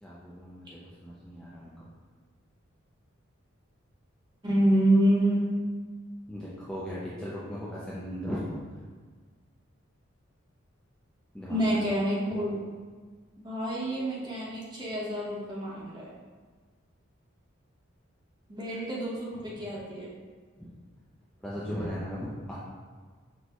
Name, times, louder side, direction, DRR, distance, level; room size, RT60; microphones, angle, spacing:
voice 1, 0.0-1.9 6.3-8.6 11.3-11.6 18.7-18.8 19.5-19.9 20.6-20.7 21.4-22.6, equal, 5° left, -9 dB, 0.4 m, -37 dB
voice 2, 4.4-5.5 11.5-12.6 13.4-16.1 18.5-20.1, right 1 dB, 20° right, -6 dB, 0.9 m, -27 dB
6.1 x 2.2 x 2.9 m, 1.5 s
head